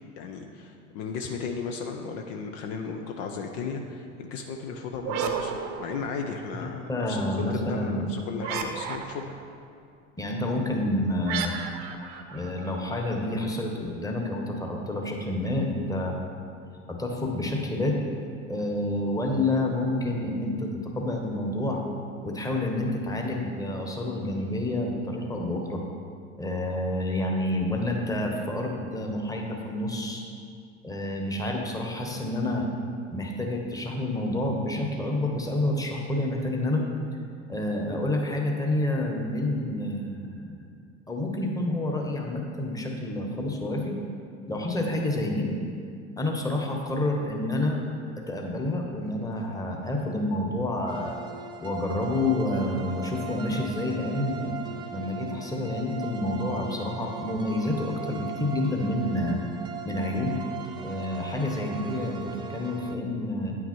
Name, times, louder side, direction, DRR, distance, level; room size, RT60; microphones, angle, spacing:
voice 1, 0.2-9.3, left 5 dB, 55° left, 3 dB, 0.7 m, -35 dB
sound 1, 4.9-6.5 8.4-9.4 11.3-13.1, right 7 dB, 60° right, 0.8 m, -33 dB
voice 2, 6.5-8.0 10.2-11.5 12.3-16.1 16.9-18.0 18.5-21.8 22.2-25.8 26.4-30.2 30.8-32.7 33.1-36.8 37.5-40.7 41.1-44.0 44.5-45.5 46.2-47.8 48.2-51.2 51.6-54.5 54.9-59.4 59.8-60.3 60.8-63.5, left 1 dB, 10° left, 1 dB, 1.3 m, -29 dB
sound 2, 50.9-63.0, right 6 dB, 15° right, 0.7 m, -39 dB
9.2 x 5.9 x 4.5 m, 2.3 s
hypercardioid pair, 75°, 37 cm